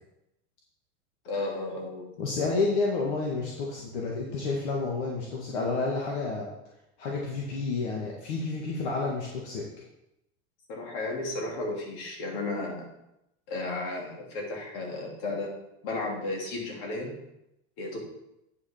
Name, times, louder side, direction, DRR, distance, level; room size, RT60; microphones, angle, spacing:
voice 1, 1.2-2.3 10.7-12.9 13.5-15.5 15.8-17.2 17.8-18.0, left 2 dB, 55° left, -1 dB, 2.7 m, -34 dB
voice 2, 2.2-6.5 7.0-9.6, left 3 dB, 75° left, -2 dB, 1.8 m, -30 dB
9.2 x 5.9 x 4.4 m, 0.85 s
supercardioid pair, 160°, 35 cm